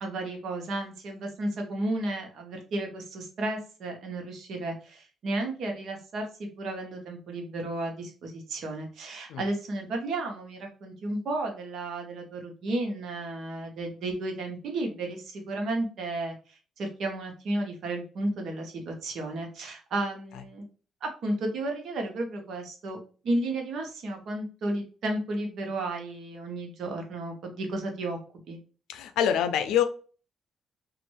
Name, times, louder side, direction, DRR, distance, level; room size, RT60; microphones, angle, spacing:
voice 1, 0.0-16.3 16.8-20.7 21.0-23.0 23.2-28.2 28.5-28.6, right 2 dB, 70° right, 3 dB, 0.9 m, -33 dB
voice 2, 28.9-29.8, left 9 dB, 85° left, 9 dB, 0.4 m, -25 dB
3.1 x 2.5 x 3.1 m, 0.38 s
cardioid pair, 90°, 0 cm